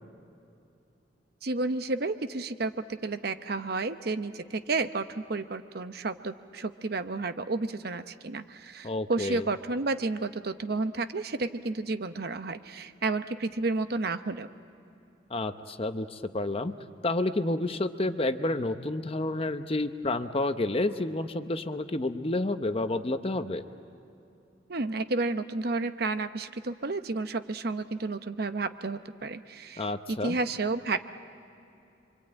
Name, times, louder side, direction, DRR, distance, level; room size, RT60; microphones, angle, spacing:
voice 1, 1.4-14.5 24.7-31.0, right 3 dB, 55° right, 10 dB, 0.8 m, -31 dB
voice 2, 8.8-9.5 15.3-16.7 17.0-23.6 29.8-30.4, left 2 dB, 30° left, 9 dB, 0.8 m, -30 dB
27.0 x 24.5 x 8.8 m, 2.7 s
head